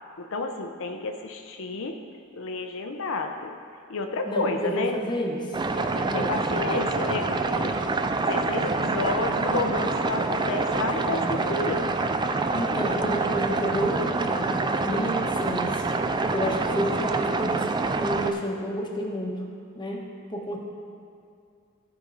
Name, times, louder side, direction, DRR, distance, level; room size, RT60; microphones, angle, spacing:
voice 1, 0.2-2.0 2.3-3.5 3.9-5.0 5.7-7.8 8.2-11.9, left 3 dB, 65° left, 4 dB, 0.7 m, -30 dB
voice 2, 4.3-5.4 6.0-6.3 12.5-14.5 14.8-17.7 18.0-19.4 19.7-20.0 20.3-20.6, equal, 20° left, -1 dB, 1.0 m, -30 dB
sound 1, 5.5-18.3, right 3 dB, 20° right, 0.3 m, -26 dB
15.0 x 5.2 x 3.9 m, 2.4 s
head